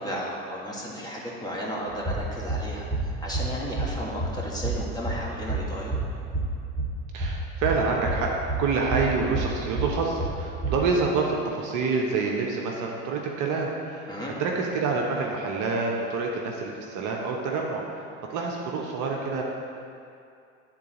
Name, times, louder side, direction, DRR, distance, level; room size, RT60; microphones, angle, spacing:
voice 1, 0.0-2.8 3.2-6.0 14.1-14.3, equal, 10° left, -5 dB, 1.7 m, -34 dB
sound 1, 1.9-10.9, right 2 dB, 25° right, 1.4 m, -30 dB
voice 2, 7.1-8.3 8.6-14.1 14.4-17.8 18.3-19.4, right 4 dB, 50° right, -1 dB, 1.0 m, -27 dB
9.8 x 3.9 x 3.9 m, 2.5 s
hypercardioid pair, 80°, 38 cm